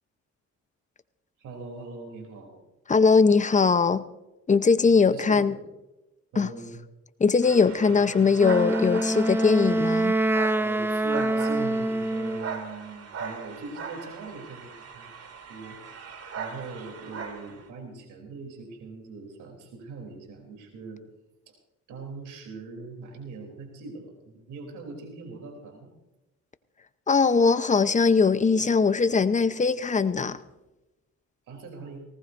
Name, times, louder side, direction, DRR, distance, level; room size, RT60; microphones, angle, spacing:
voice 1, 1.4-2.6 4.8-5.6 6.3-6.8 7.9-8.3 10.6-15.8 16.3-21.0 21.9-25.9 31.5-32.1, right 3 dB, 85° right, 3.3 m, -41 dB
voice 2, 2.9-4.0 4.5-5.5 6.4-6.5 7.2-10.1 27.1-30.4, left 5 dB, 25° left, 0.8 m, -21 dB
sound 1, 7.4-17.7, right 5 dB, 55° right, 2.5 m, -39 dB
Wind instrument woodwind instrument, 8.4-12.6, right 1 dB, 10° right, 0.5 m, -25 dB
19.0 x 18.5 x 2.6 m
cardioid pair, 90°, 30 cm